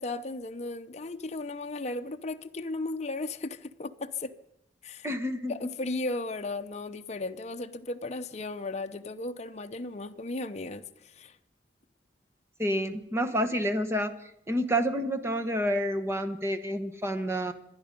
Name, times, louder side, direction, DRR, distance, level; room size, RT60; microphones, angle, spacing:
voice 1, 0.0-4.3 4.8-5.1 5.5-11.4, left 2 dB, 40° left, 0.7 m, -35 dB
voice 2, 5.0-5.5 12.6-14.1 14.5-17.5, equal, 15° right, 1.1 m, -29 dB
26.0 x 10.5 x 5.3 m
head